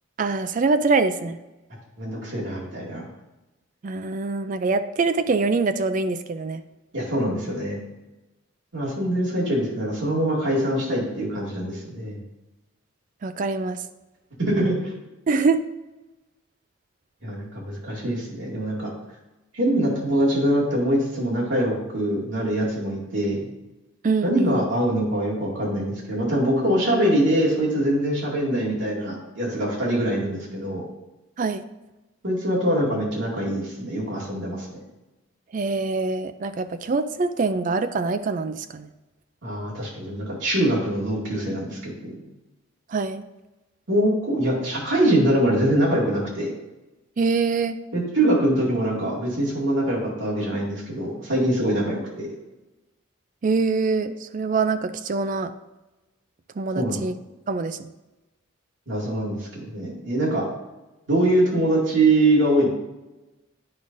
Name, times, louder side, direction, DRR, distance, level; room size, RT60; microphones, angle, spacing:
voice 1, 0.2-1.4 3.8-6.6 13.2-13.8 15.3-15.6 24.0-24.7 31.4-31.6 35.5-38.9 42.9-43.2 47.2-47.8 53.4-55.5 56.6-57.2 57.5-57.9, right 4 dB, 40° right, 10 dB, 0.3 m, -24 dB
voice 2, 2.0-3.0 6.9-7.8 8.7-12.2 14.4-14.9 17.2-18.9 19.5-23.4 24.2-30.8 32.2-34.7 39.4-42.2 43.9-46.5 47.9-52.3 56.7-57.0 58.9-60.5 61.1-62.7, right 1 dB, 60° right, -4 dB, 2.1 m, -23 dB
9.7 x 5.3 x 2.6 m, 1.0 s
head